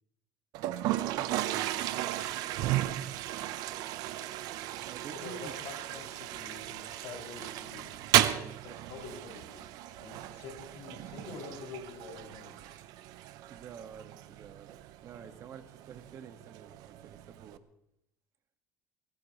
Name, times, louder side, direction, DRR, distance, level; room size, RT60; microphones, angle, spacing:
Toilet flush, 0.5-17.6, right 14 dB, 70° right, 0.8 m, -35 dB
voice 1, 0.8-2.0 2.2-3.2 4.8-5.5 13.5-17.6, right 7 dB, 45° right, 7 dB, 1.6 m, -49 dB
voice 2, 5.1-8.0 8.2-12.8, left 4 dB, 70° left, -1 dB, 6.1 m, -47 dB
23.0 x 19.0 x 3.1 m, 0.78 s
cardioid pair, 135°, 7 cm